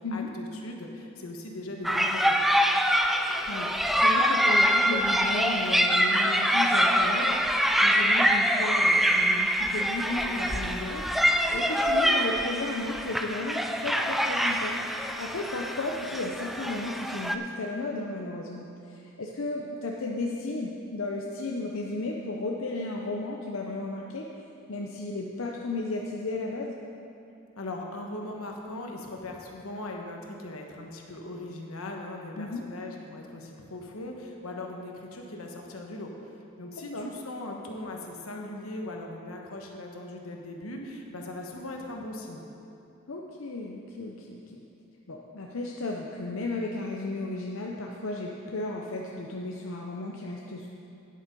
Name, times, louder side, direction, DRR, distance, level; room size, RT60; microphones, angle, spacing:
voice 1, 0.0-2.5 27.6-36.1 36.6-42.4, left 1 dB, 85° left, 1 dB, 1.3 m, -39 dB
sound 1, 1.8-17.3, equal, ahead, 0.3 m, -25 dB
voice 2, 3.5-24.3 24.7-26.8 32.4-32.6 36.8-37.1 43.1-44.6 45.1-50.7, left 2 dB, 70° left, -1 dB, 0.7 m, -34 dB
10.0 x 8.1 x 5.3 m, 2.7 s
head